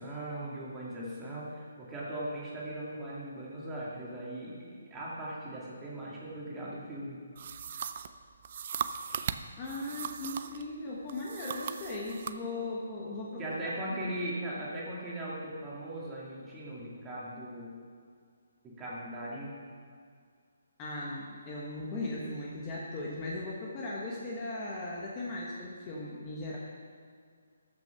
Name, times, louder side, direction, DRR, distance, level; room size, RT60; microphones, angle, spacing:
voice 1, 0.0-7.2 13.4-17.7 18.6-19.5, right 1 dB, 10° right, -6 dB, 2.1 m, -39 dB
sound 1, 7.4-10.7 11.1-12.4, right 7 dB, 40° right, 0.5 m, -38 dB
voice 2, 9.6-13.7 20.8-26.6, left 2 dB, 20° left, -4 dB, 1.2 m, -38 dB
14.0 x 6.1 x 5.8 m, 2.1 s
hypercardioid pair, 170°, 0 cm